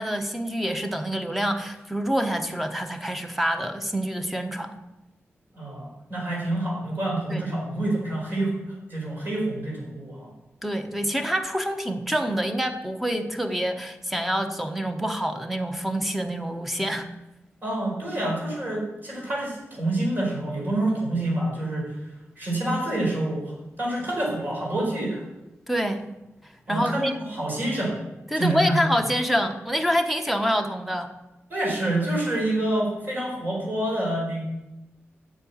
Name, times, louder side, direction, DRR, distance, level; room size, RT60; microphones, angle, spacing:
voice 1, 0.0-4.8 7.3-7.4 10.6-17.1 25.7-26.1 26.7-27.2 28.3-31.1, equal, 5° right, 6 dB, 1.1 m, -26 dB
voice 2, 5.5-10.3 17.6-22.0 22.4-25.2 26.7-28.0 28.3-28.9 31.5-34.4, right 1 dB, 45° right, -4 dB, 4.6 m, -27 dB
11.0 x 8.1 x 7.2 m, 0.97 s
wide cardioid pair, 140°, 5 cm